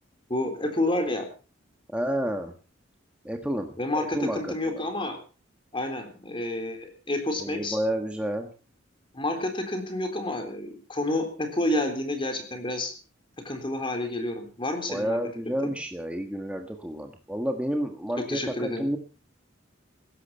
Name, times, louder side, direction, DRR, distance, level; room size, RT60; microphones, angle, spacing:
voice 1, 0.3-1.3 3.8-5.2 5.7-7.8 9.1-12.9 13.5-15.2 15.5-15.7 18.3-18.8, left 1 dB, 25° left, 6 dB, 3.7 m, -29 dB
voice 2, 1.9-2.5 3.2-4.9 7.4-8.5 14.9-19.0, equal, 5° right, 4 dB, 1.5 m, -30 dB
16.5 x 13.5 x 5.6 m, 0.38 s
head